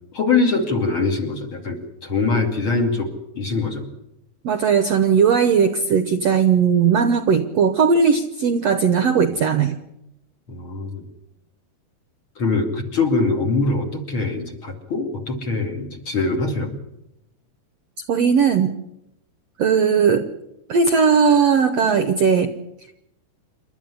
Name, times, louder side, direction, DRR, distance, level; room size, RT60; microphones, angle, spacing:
voice 1, 0.1-3.9 10.5-11.1 12.4-16.8, left 3 dB, 40° left, 3 dB, 3.0 m, -23 dB
voice 2, 4.4-9.8 18.1-18.7 19.6-20.3 20.7-22.5, right 6 dB, 65° right, 9 dB, 1.7 m, -18 dB
28.5 x 12.5 x 9.8 m, 0.85 s
omnidirectional pair, 4.1 m